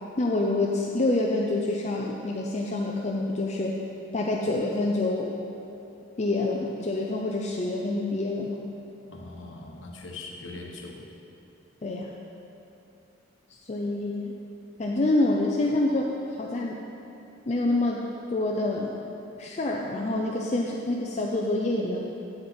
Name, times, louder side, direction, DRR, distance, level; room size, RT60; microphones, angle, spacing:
voice 1, 0.2-3.8 4.1-5.4 6.2-8.6 11.8-12.1 13.7-14.4 14.8-16.0 16.4-16.8 17.5-18.0 18.3-19.0 19.4-22.0, left 2 dB, 35° left, -1 dB, 0.5 m, -27 dB
voice 2, 9.1-11.1, left 2 dB, 75° left, 0 dB, 1.1 m, -41 dB
8.1 x 8.0 x 4.3 m, 2.8 s
head